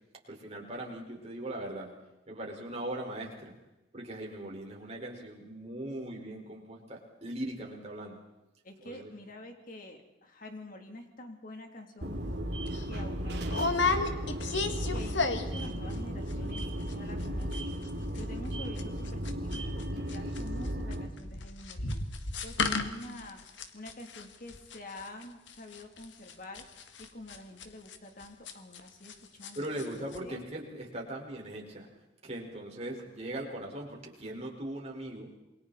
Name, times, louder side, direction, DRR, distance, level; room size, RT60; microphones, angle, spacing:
voice 1, 0.3-1.9 2.3-3.5 3.9-8.2 8.8-9.0 29.5-31.9 32.2-35.3, right 1 dB, 35° right, -1 dB, 5.2 m, -39 dB
voice 2, 8.6-12.2 12.9-14.1 14.9-16.6 16.9-17.7 18.2-22.0 22.4-23.4 23.7-26.6 27.0-30.4, left 1 dB, 50° left, 3 dB, 3.3 m, -47 dB
sound 1, 12.0-21.1, equal, 65° right, 3.0 m, -35 dB
sound 2, 12.1-12.3 12.7-12.8 13.5-15.7 15.9-16.3 16.6-16.7 16.9-17.3 17.5-19.8 20.1-29.1 29.4-29.9 30.1-30.2, left 4 dB, 85° left, 1.8 m, -33 dB
28.0 x 23.0 x 4.3 m, 0.97 s
head